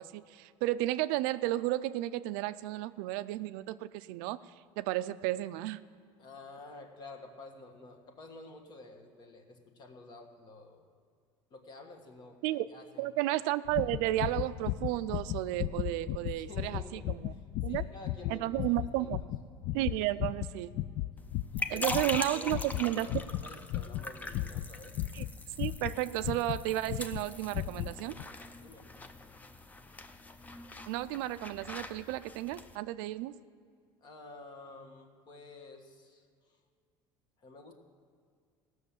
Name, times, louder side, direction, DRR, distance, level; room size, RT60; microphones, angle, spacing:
voice 1, 0.0-4.4 4.8-5.8 12.4-12.7 13.0-17.3 17.6-17.8 18.3-19.2 19.7-20.7 21.7-23.1 25.1-25.3 25.6-28.2 30.9-33.3, right 16 dB, 85° right, 14 dB, 0.4 m, -33 dB
voice 2, 6.2-11.0 11.5-12.4 12.7-13.1 16.2-19.1 21.5-25.0 28.6-29.0 34.0-36.6 37.4-37.7, left 3 dB, 45° left, 4 dB, 1.5 m, -51 dB
sound 1, 13.7-26.6 26.9-27.2 27.5-27.9 28.2-28.3, left 14 dB, 60° left, 0.4 m, -36 dB
sound 2, 21.2-32.8, left 2 dB, 15° left, 0.6 m, -42 dB
16.5 x 6.4 x 7.2 m, 2.1 s
cardioid pair, 125°, 10 cm